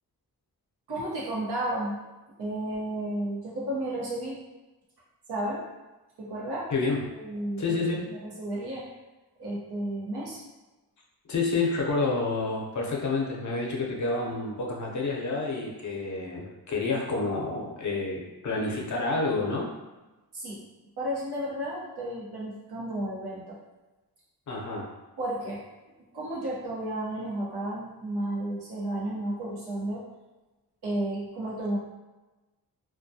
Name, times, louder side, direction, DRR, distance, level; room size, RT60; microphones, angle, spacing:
voice 1, 0.9-2.0 2.4-4.4 5.3-5.6 6.2-6.7 7.1-8.9 9.4-10.4 20.3-20.6 21.0-23.6 25.2-25.6 26.1-30.0 30.8-31.8, right 1 dB, 80° right, -6 dB, 0.9 m, -32 dB
voice 2, 6.7-7.0 7.6-8.1 11.2-19.7 24.5-24.9, left 3 dB, 50° left, -1 dB, 0.6 m, -29 dB
2.3 x 2.2 x 2.6 m, 1.1 s
cardioid pair, 80°, 38 cm